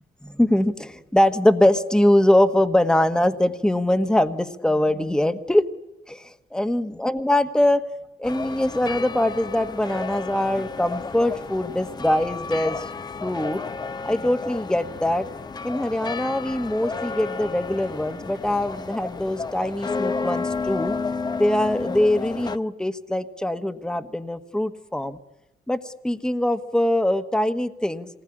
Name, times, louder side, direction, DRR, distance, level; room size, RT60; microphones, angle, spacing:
voice 1, 0.2-5.7 6.1-7.8 8.2-12.9 13.2-13.6 14.0-15.3 15.6-20.9 21.4-25.2 25.7-28.1, left 1 dB, 5° left, 8 dB, 1.4 m, -22 dB
sound 1, 8.2-22.6, left 4 dB, 25° left, 1.0 m, -32 dB
26.5 x 20.0 x 10.0 m, 0.94 s
cardioid pair, 100°, 15 cm